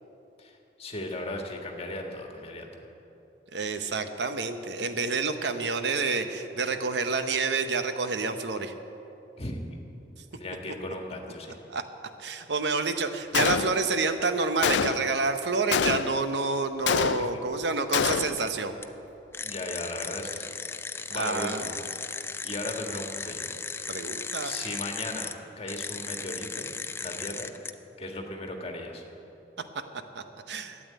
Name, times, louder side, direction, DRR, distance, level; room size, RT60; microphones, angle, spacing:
voice 1, 0.4-2.7 9.4-9.6 10.3-11.5 17.2-17.3 19.4-20.5 21.1-21.8 22.4-23.5 24.4-26.7 27.0-27.5 28.0-29.0, left 1 dB, 35° left, 2 dB, 1.6 m, -36 dB
voice 2, 3.5-8.7 11.7-11.8 12.2-18.8 21.1-21.7 23.9-24.5 30.1-30.8, right 4 dB, 75° right, 8 dB, 0.9 m, -28 dB
Gunshot gunfire, 13.3-14.1 14.6-15.2 15.7-16.3 16.9-17.5 17.9-18.5, left 7 dB, 85° left, 0.4 m, -27 dB
sound 1, 18.0-18.5 18.8-18.9 19.3-25.3 25.7-27.7, left 4 dB, 15° left, 0.4 m, -36 dB
12.5 x 8.7 x 9.3 m, 2.9 s
head